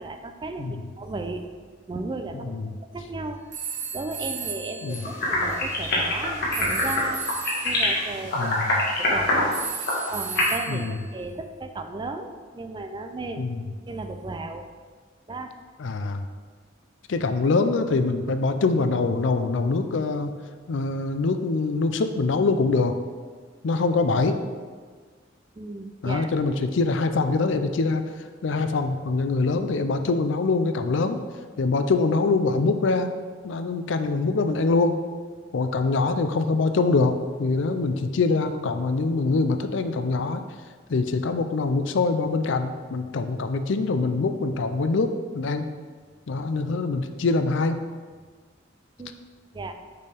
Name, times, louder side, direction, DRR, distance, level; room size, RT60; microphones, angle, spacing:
voice 1, 0.0-1.5 1.9-2.6 2.9-3.4 3.9-5.0 5.3-7.2 7.6-8.5 8.9-9.6 10.1-13.5 13.9-14.7 15.3-15.5 25.6-26.3 49.0-49.1 49.5-49.7, right 2 dB, 25° right, 7 dB, 0.4 m, -34 dB
voice 2, 0.6-0.9 2.3-2.8 4.8-5.1 8.3-8.8 10.7-11.0 13.4-13.6 15.8-16.3 17.1-20.3 20.7-22.9 23.6-24.4 26.0-28.0 28.4-31.2 31.6-33.1 33.4-35.0 35.5-40.4 40.9-45.7 46.3-47.8, left 3 dB, 70° left, 9 dB, 0.5 m, -24 dB
sound 1, 3.5-5.8 6.5-7.9 9.5-11.2, right 7 dB, 40° right, 0.8 m, -35 dB
sound 2, 4.9-10.5, left 1 dB, 55° left, 1.6 m, -24 dB
6.6 x 5.4 x 3.4 m, 1.5 s
head